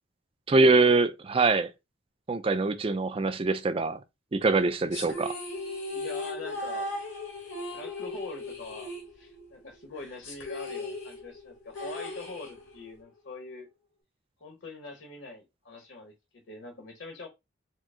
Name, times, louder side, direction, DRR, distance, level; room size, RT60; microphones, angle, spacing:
voice 1, 0.5-1.7 2.3-4.0 4.3-5.3, right 3 dB, 30° right, 0.4 m, -23 dB
sound 1, 4.9-9.6 9.8-9.9 10.2-12.9, left 2 dB, 85° left, 1.3 m, -37 dB
voice 2, 5.9-7.0 7.7-13.7 14.4-17.3, left 3 dB, 65° left, 0.9 m, -43 dB
4.4 x 2.0 x 3.6 m
head